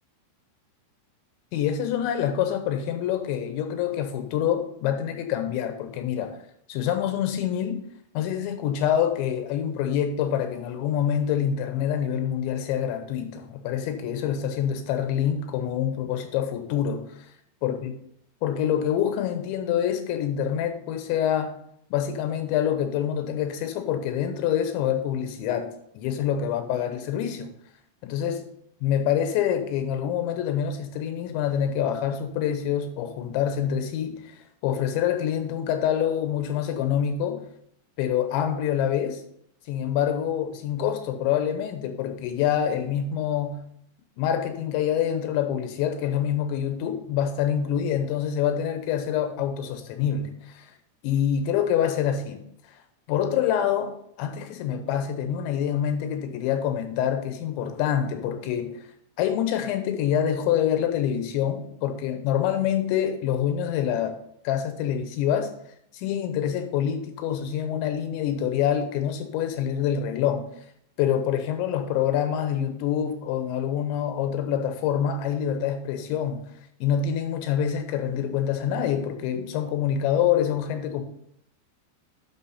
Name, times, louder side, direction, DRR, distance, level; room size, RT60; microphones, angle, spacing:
voice 1, 1.5-6.4 6.7-7.8 8.1-17.3 17.6-17.9 18.4-21.5 21.9-27.5 28.0-28.4 28.8-37.4 38.0-39.2 39.7-43.6 44.2-50.7 51.0-52.4 53.1-58.9 59.2-64.2 64.4-65.5 65.9-70.5 71.0-76.4 76.8-81.0, left 9 dB, 90° left, 3.3 m, -26 dB
9.8 x 6.4 x 4.2 m
omnidirectional pair, 5.1 m